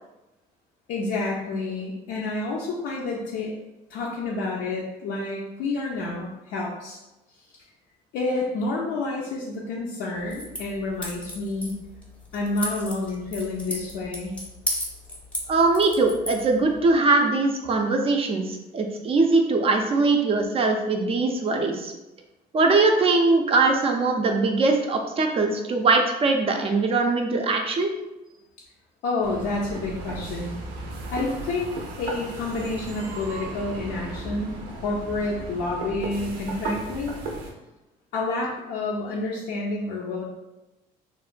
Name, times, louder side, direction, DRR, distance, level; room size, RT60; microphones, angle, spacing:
voice 1, 0.9-3.5 3.9-7.0 8.1-11.8 12.3-14.4 29.0-30.5 31.1-31.7 32.0-37.1 38.1-40.2, left 2 dB, 85° left, -3 dB, 0.4 m, -29 dB
sound 1, 10.2-16.9, left 1 dB, 5° left, 0.6 m, -35 dB
voice 2, 15.5-21.9 22.5-27.9, right 3 dB, 35° right, 3 dB, 0.3 m, -21 dB
sound 2, 29.2-37.5, right 2 dB, 90° right, 0.5 m, -35 dB
3.0 x 2.1 x 2.4 m, 1.0 s
cardioid pair, 110°, 17 cm